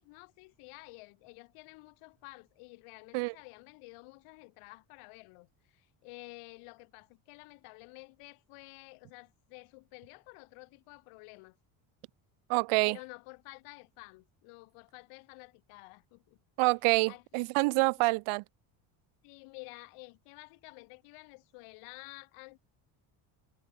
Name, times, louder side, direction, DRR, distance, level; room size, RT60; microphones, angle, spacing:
voice 1, 0.0-11.6 12.8-16.4 17.1-17.4 18.0-18.1 19.2-22.6, left 25 dB, 90° left, 4.8 m, -51 dB
voice 2, 12.5-13.0 16.6-18.4, right 26 dB, 75° right, 0.7 m, -27 dB
cardioid pair, 135°, 50 cm